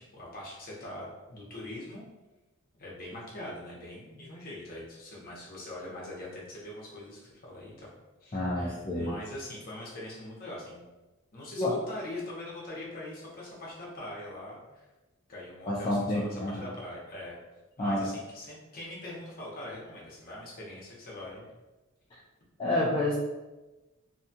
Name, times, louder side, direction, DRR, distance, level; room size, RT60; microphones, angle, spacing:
voice 1, 0.0-2.0 2.7-7.9 8.2-10.8 11.3-14.9 15.3-17.4 17.8-21.4, left 1 dB, 45° left, -5 dB, 0.8 m, -42 dB
voice 2, 8.3-9.1 11.6-11.7 15.7-16.6 17.8-18.1 22.6-23.2, left 1 dB, 25° left, -7 dB, 0.4 m, -28 dB
2.7 x 2.3 x 2.7 m, 1.1 s
head